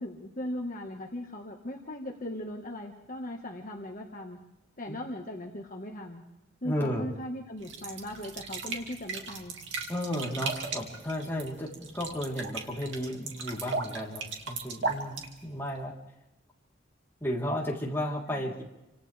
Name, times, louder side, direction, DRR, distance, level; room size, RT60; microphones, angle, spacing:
voice 1, 0.0-4.4 4.8-6.2 6.6-9.6 18.3-18.6, left 1 dB, 40° left, 1 dB, 1.8 m, -38 dB
voice 2, 6.6-7.1 9.9-15.9 17.2-18.6, equal, 10° left, -4 dB, 3.9 m, -33 dB
sound 1, 7.6-15.8, right 4 dB, 65° right, 2.7 m, -37 dB
29.0 x 26.0 x 3.6 m, 0.94 s
head